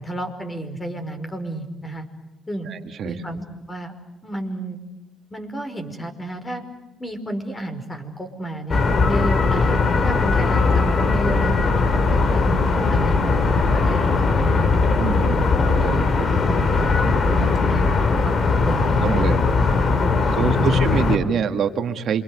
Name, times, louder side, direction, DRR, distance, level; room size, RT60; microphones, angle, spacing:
voice 1, 0.0-2.1 2.5-2.7 3.0-3.9 4.2-4.8 5.3-6.6 7.0-12.6 12.9-14.8 15.2-16.1 16.4-17.9 18.2-18.4 18.6-19.3 20.4-21.1, right 2 dB, 20° left, 7 dB, 5.4 m, -31 dB
voice 2, 2.6-3.1 15.0-16.2 19.0-19.5 20.3-22.2, right 7 dB, 65° right, 6 dB, 2.0 m, -25 dB
sound 1, 8.7-21.2, left 4 dB, 50° left, 2.7 m, -19 dB
28.0 x 25.5 x 8.1 m, 0.99 s
cardioid pair, 90°, 0 cm